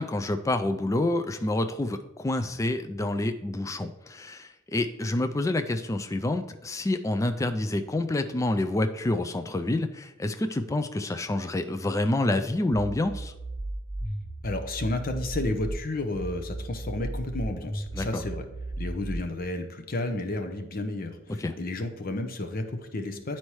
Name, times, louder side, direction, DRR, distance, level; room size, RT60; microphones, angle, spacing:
voice 1, 0.0-13.3 17.9-18.1 21.4-21.5, left 2 dB, 15° left, 8 dB, 0.3 m, -28 dB
sound 1, 12.7-15.7 16.1-19.2, right 1 dB, 70° left, 2.4 m, -35 dB
voice 2, 14.4-18.5 18.8-23.4, left 2 dB, 45° left, 6 dB, 0.7 m, -32 dB
9.6 x 4.3 x 3.1 m, 0.98 s
head